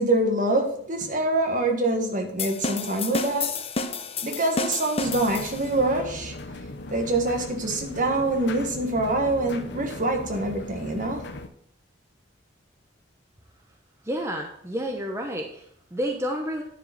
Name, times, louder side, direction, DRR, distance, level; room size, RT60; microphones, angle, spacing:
voice 1, 0.0-3.5 4.2-6.3 6.9-11.2, right 2 dB, 45° right, 3 dB, 1.5 m, -25 dB
sound 1, 2.4-5.8, left 4 dB, 30° left, 0.7 m, -30 dB
sound 2, 5.0-11.5, left 2 dB, 65° left, 0.8 m, -38 dB
voice 2, 14.0-16.6, equal, 15° right, 1 dB, 0.8 m, -30 dB
10.0 x 4.9 x 5.8 m, 0.67 s
head